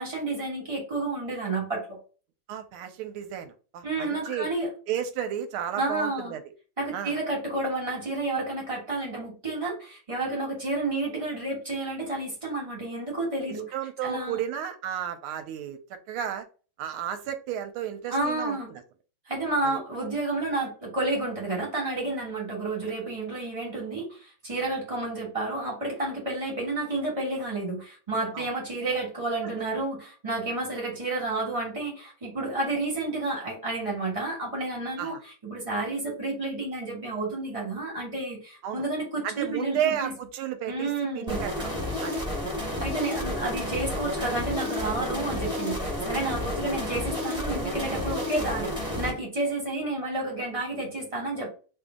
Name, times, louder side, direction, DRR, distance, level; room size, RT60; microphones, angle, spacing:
voice 1, 0.0-2.0 3.8-4.7 5.8-6.3 6.8-13.7 14.0-14.4 18.1-18.7 19.3-35.1 35.4-40.1 40.7-41.4 42.8-51.5, right 2 dB, 20° right, -3 dB, 1.0 m, -30 dB
voice 2, 2.5-4.5 4.9-6.4 6.9-7.1 13.5-15.8 16.1-16.5 16.8-18.8 19.6-19.8 28.3-28.5 29.4-29.5 35.0-35.2 38.6-38.8 39.2-41.7 42.0-42.2, right 9 dB, 85° right, 9 dB, 1.4 m, -33 dB
sound 1, 41.3-49.1, left 1 dB, 5° right, 0.7 m, -31 dB
3.3 x 2.6 x 3.6 m, 0.37 s
omnidirectional pair, 2.3 m